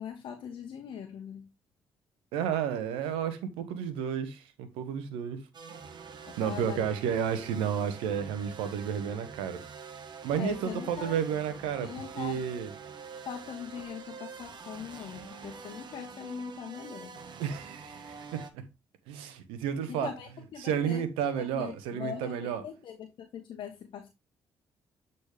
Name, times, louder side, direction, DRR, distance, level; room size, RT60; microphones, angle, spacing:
voice 1, 0.0-1.5 6.3-6.9 10.4-11.2 11.8-12.4 13.2-17.1 19.9-21.0 21.4-24.1, left 8 dB, 65° left, 1.1 m, -41 dB
voice 2, 2.3-5.4 6.4-9.6 10.2-11.9 12.2-12.7 17.4-18.6 19.1-20.1 20.6-22.6, right 8 dB, 85° right, 1.1 m, -31 dB
sound 1, 5.5-18.5, right 5 dB, 55° right, 1.3 m, -46 dB
8.2 x 4.2 x 3.3 m
supercardioid pair, 55°, 9 cm